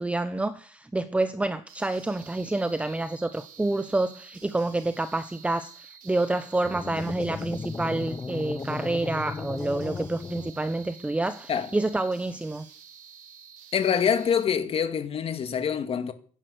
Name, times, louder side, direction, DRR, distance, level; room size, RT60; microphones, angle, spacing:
voice 1, 0.0-12.7, right 2 dB, 10° right, 0.9 m, -28 dB
sound 1, 1.7-14.5, right 7 dB, 80° right, 4.4 m, -50 dB
sound 2, 6.6-10.9, left 4 dB, 20° left, 0.7 m, -36 dB
voice 2, 13.7-16.1, left 7 dB, 45° left, 2.2 m, -25 dB
16.0 x 11.0 x 8.0 m
cardioid pair, 135°, 14 cm